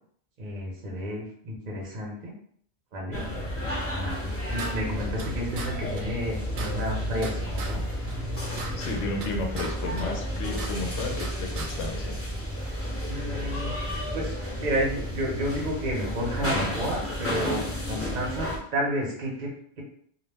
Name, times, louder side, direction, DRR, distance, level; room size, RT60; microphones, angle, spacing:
voice 1, 0.4-2.3 2.9-3.2 3.6-7.8 13.0-19.5, equal, 45° right, -2 dB, 0.8 m, -31 dB
sound 1, 3.1-18.6, equal, 15° left, 0.5 m, -32 dB
sound 2, 4.1-5.3 5.6-5.7 6.0-6.1 6.3-7.7 8.1-9.7 10.0-11.3 11.6-11.7, right 4 dB, 80° right, 0.9 m, -38 dB
voice 2, 8.8-12.2, left 3 dB, 85° left, 2 dB, 0.9 m, -33 dB
2.4 x 2.0 x 3.3 m, 0.62 s
omnidirectional pair, 1.2 m